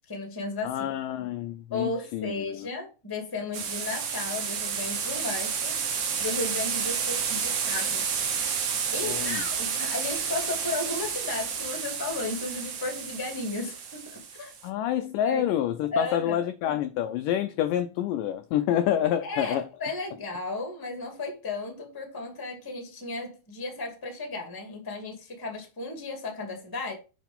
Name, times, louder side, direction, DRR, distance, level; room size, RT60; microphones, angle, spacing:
voice 1, 0.1-0.9 1.7-5.8 6.2-8.0 8.9-14.5 15.2-15.4 15.9-16.4 19.2-26.9, left 3 dB, 10° left, 1.2 m, -34 dB
voice 2, 0.6-2.3 9.0-9.4 14.6-19.6, left 11 dB, 80° left, 1.9 m, -27 dB
sound 1, 3.5-14.6, right 6 dB, 60° right, 2.4 m, -30 dB
7.3 x 6.0 x 3.6 m
omnidirectional pair, 4.4 m